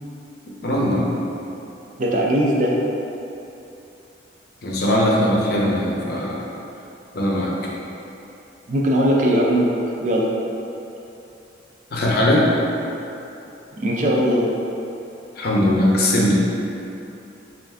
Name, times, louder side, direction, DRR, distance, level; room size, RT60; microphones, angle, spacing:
voice 1, 0.6-1.1 4.6-6.4 7.1-7.5 11.9-12.5 15.4-16.3, left 1 dB, 50° left, -4 dB, 0.6 m, -19 dB
voice 2, 2.0-2.8 8.7-9.7 10.0-10.3 13.8-14.5, equal, 40° right, -3 dB, 0.4 m, -19 dB
4.2 x 2.5 x 3.4 m, 2.8 s
head